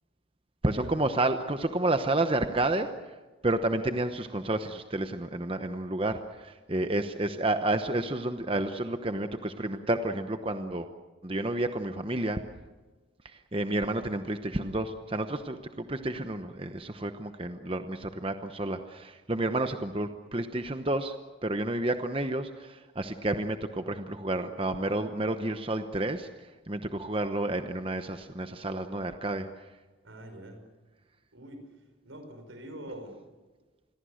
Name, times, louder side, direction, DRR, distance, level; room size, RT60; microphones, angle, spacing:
voice 1, 0.6-2.9 3.4-10.9 11.2-12.4 13.2-21.1 21.4-26.3 26.7-29.5, right 2 dB, 30° right, 8 dB, 1.0 m, -30 dB
voice 2, 30.0-30.6 31.3-31.6 32.0-33.2, right 1 dB, 85° right, 6 dB, 5.4 m, -44 dB
28.0 x 21.5 x 6.5 m, 1.3 s
head